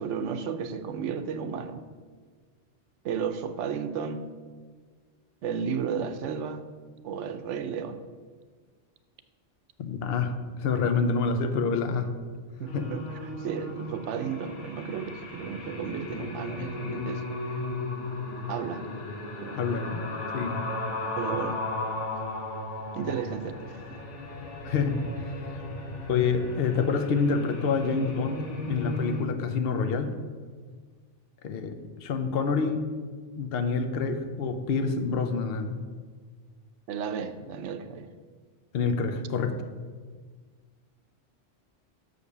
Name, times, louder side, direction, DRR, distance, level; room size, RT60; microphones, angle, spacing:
voice 1, 0.0-1.8 3.0-4.3 5.4-6.6 7.0-8.0 12.6-17.6 18.5-18.9 19.4-19.6 21.2-21.6 22.9-24.0 36.9-38.1, right 6 dB, 85° right, 9 dB, 1.0 m, -33 dB
voice 2, 9.8-12.2 12.7-12.9 19.5-20.0 20.3-20.6 24.6-25.6 26.1-30.1 31.4-31.8 32.0-32.8 33.4-35.8 38.7-39.6, left 5 dB, 60° left, 8 dB, 0.9 m, -27 dB
sound 1, 12.7-29.2, left 2 dB, 85° left, 1.4 m, -36 dB
6.6 x 5.2 x 6.6 m, 1.6 s
omnidirectional pair, 1.2 m